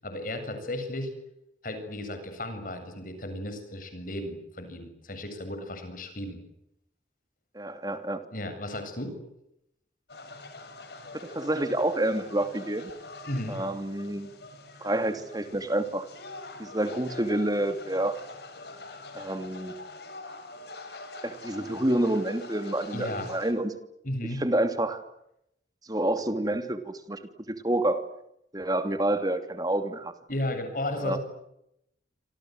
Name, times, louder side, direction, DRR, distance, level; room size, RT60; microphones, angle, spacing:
voice 1, 0.0-1.1 1.6-6.4 8.3-9.2 13.3-13.6 22.9-23.3 24.0-24.4 30.3-31.2, left 1 dB, 50° left, 8 dB, 7.7 m, -34 dB
voice 2, 7.5-8.2 11.2-12.9 13.5-14.3 14.8-16.1 16.6-18.2 19.1-19.8 21.2-23.7 24.4-25.0 25.9-27.2 27.5-28.0 28.5-30.1 31.0-31.2, right 1 dB, 20° right, 9 dB, 2.9 m, -28 dB
sound 1, 10.1-23.5, left 2 dB, 65° left, 6.2 m, -44 dB
27.5 x 27.0 x 8.0 m, 0.81 s
head